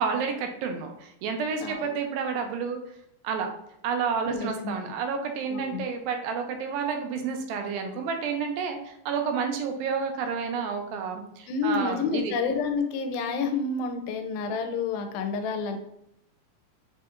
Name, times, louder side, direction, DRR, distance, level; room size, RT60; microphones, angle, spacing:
voice 1, 0.0-2.8 3.2-3.5 3.8-12.3, right 6 dB, 85° right, 4 dB, 2.4 m, -30 dB
voice 2, 1.6-1.9 4.2-4.8 5.5-5.9 11.5-15.8, left 4 dB, 85° left, 5 dB, 2.3 m, -29 dB
7.0 x 2.8 x 2.4 m, 0.76 s
omnidirectional pair, 4.2 m